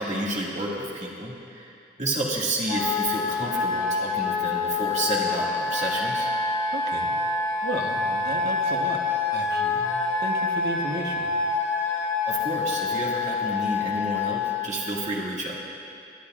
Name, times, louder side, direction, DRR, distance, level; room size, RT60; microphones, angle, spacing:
voice 1, 0.0-6.3 11.9-12.0 12.3-15.6, right 1 dB, 40° right, -5 dB, 2.1 m, -30 dB
Wind instrument woodwind instrument, 2.7-14.7, left 4 dB, 70° left, 1.9 m, -26 dB
voice 2, 6.7-7.1 7.6-9.0 9.3-9.9 10.2-11.3, right 1 dB, 55° right, 1 dB, 1.2 m, -33 dB
26.0 x 10.0 x 2.5 m, 2.7 s
head